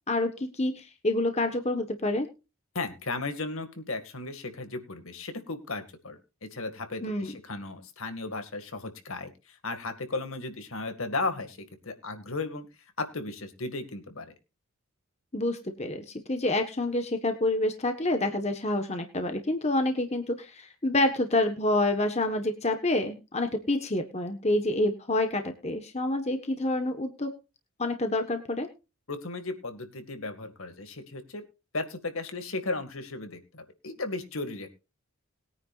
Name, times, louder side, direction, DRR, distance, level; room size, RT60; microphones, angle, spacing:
voice 1, 0.1-2.3 7.0-7.3 15.3-27.3 27.8-28.7, left 2 dB, 30° left, 6 dB, 1.4 m, -28 dB
voice 2, 2.7-12.7 13.0-14.3 29.1-31.4 31.7-34.7, left 3 dB, 65° left, 7 dB, 2.2 m, -35 dB
21.0 x 9.7 x 2.5 m, 0.29 s
head